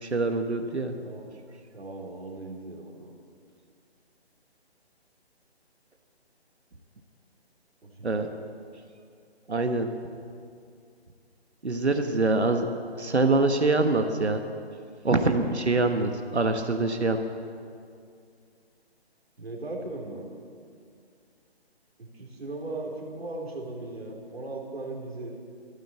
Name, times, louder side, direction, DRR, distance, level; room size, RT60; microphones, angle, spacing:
voice 1, 0.0-0.9 8.0-8.3 9.5-9.9 11.6-12.7 13.0-14.4 15.0-17.2, right 3 dB, 80° right, 6 dB, 1.3 m, -24 dB
voice 2, 1.7-3.1 7.8-8.4 19.4-20.2 22.0-25.3, right 2 dB, 65° right, 0 dB, 3.5 m, -38 dB
13.5 x 13.0 x 7.6 m, 2.3 s
figure-of-eight pair, 145°, 33 cm